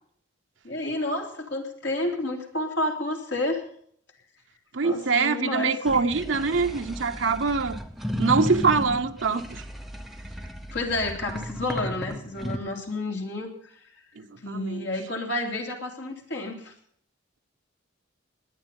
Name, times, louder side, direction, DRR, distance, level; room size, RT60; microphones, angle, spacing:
voice 1, 0.6-3.6 4.8-5.8 10.7-13.5 14.4-16.7, left 2 dB, 65° left, 3.3 m, -30 dB
voice 2, 4.7-7.8 8.2-9.6 14.2-14.9, right 4 dB, 70° right, 0.8 m, -24 dB
sound 1, 5.8-12.6, equal, ahead, 1.0 m, -34 dB
20.0 x 9.8 x 5.4 m
head